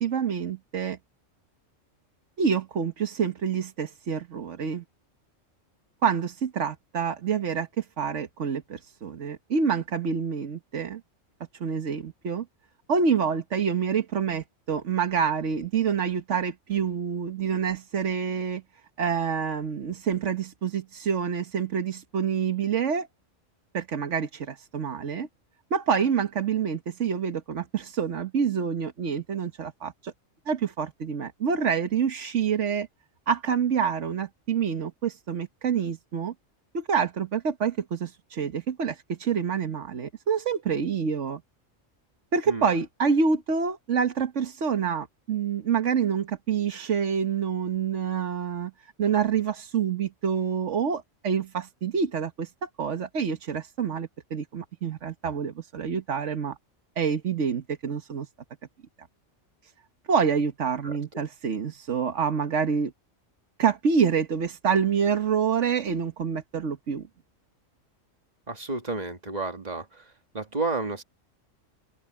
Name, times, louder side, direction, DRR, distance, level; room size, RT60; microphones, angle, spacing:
voice 1, 0.0-1.0 2.4-4.8 6.0-11.0 11.6-12.4 12.9-18.6 19.0-23.1 23.7-25.3 25.7-30.1 30.5-32.9 33.3-36.3 36.7-41.4 42.3-56.6 57.0-58.3 59.6-59.7 60.1-62.9 63.6-67.1, right 6 dB, 70° right, 1.6 m, -27 dB
voice 2, 68.5-70.1 70.3-71.0, right 3 dB, 35° right, 1.9 m, -31 dB
open air
omnidirectional pair, 1.3 m